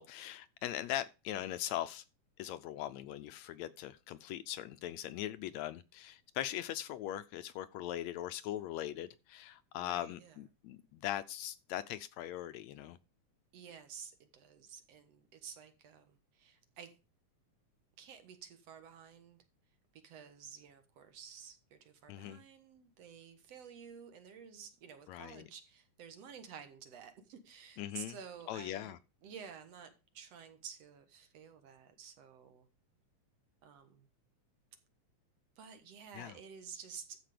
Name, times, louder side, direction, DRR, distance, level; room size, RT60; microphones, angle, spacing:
voice 1, 0.0-2.0 2.4-13.0 22.1-22.4 25.1-25.5 27.8-28.2 28.5-29.0 36.1-36.4, left 12 dB, 75° left, 1.8 m, -40 dB
voice 2, 9.8-10.4 13.5-16.9 18.0-19.4 20.0-28.9 29.2-32.7 33.6-34.1 35.6-37.2, right 7 dB, 60° right, 2.3 m, -52 dB
13.5 x 5.1 x 5.0 m
omnidirectional pair, 3.4 m